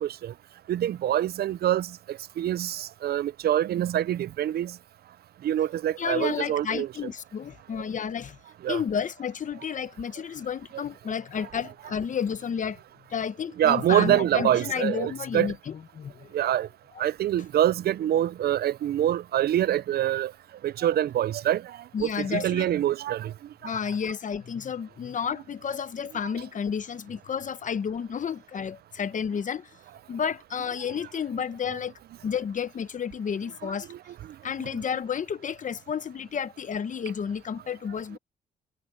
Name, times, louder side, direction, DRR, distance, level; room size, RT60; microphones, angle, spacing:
voice 1, 0.0-0.3 0.7-4.7 5.4-6.9 8.6-8.8 13.6-15.5 16.3-16.7 17.0-20.3 20.6-23.3 23.6-23.8 31.7-31.8 33.6-34.0, right 11 dB, 60° right, 0.5 m, -25 dB
voice 2, 6.0-8.4 8.7-12.8 13.1-16.5 21.9-22.7 23.6-29.7 30.1-31.9 32.2-33.9 34.4-38.2, left 7 dB, 45° left, 1.0 m, -31 dB
cardioid pair, 110°, 18 cm